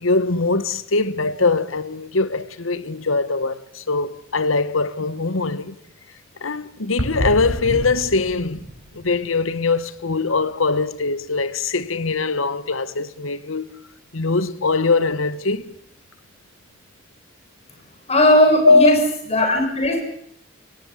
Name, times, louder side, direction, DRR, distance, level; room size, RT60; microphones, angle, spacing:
voice 1, 0.0-5.7 6.4-8.7 8.9-13.8 14.1-15.8 18.6-18.9, left 3 dB, 80° left, 1.3 m, -21 dB
sound 1, 7.0-10.0 10.3-10.4 11.0-11.1 15.6-15.7, equal, 90° right, 5.4 m, -30 dB
voice 2, 18.1-19.0 19.3-20.1, left 1 dB, 30° left, 6.6 m, -16 dB
26.5 x 17.5 x 8.4 m
head